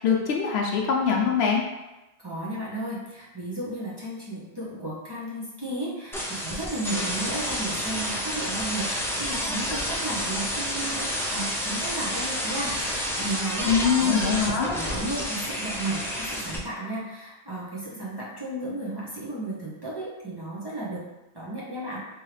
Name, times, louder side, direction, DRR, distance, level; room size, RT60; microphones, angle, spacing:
voice 1, 0.0-1.6 13.6-14.7, left 6 dB, 70° left, 0 dB, 0.8 m, -23 dB
voice 2, 2.2-21.0 21.3-22.0, right 2 dB, 25° right, -7 dB, 0.8 m, -34 dB
sound 1, 6.1-16.6, equal, 5° left, 0.4 m, -29 dB
3.6 x 3.1 x 3.2 m, 1.0 s
omnidirectional pair, 1.1 m